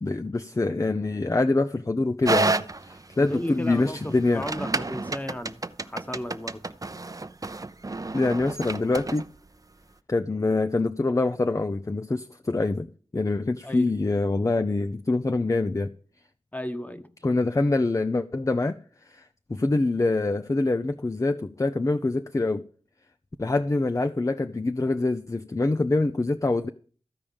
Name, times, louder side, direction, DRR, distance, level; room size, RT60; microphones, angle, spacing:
voice 1, 0.0-2.5 2.9-4.5 8.1-9.2 10.1-12.9 13.1-15.9 17.2-18.8 19.1-22.6 23.4-26.7, left 2 dB, 30° left, 0.5 m, -25 dB
sound 1, 2.2-9.3, right 3 dB, 35° right, 0.6 m, -30 dB
voice 2, 3.2-6.6 13.6-13.9 16.5-17.1, left 1 dB, 15° left, 1.2 m, -34 dB
14.0 x 4.9 x 8.8 m
wide cardioid pair, 60°, 11 cm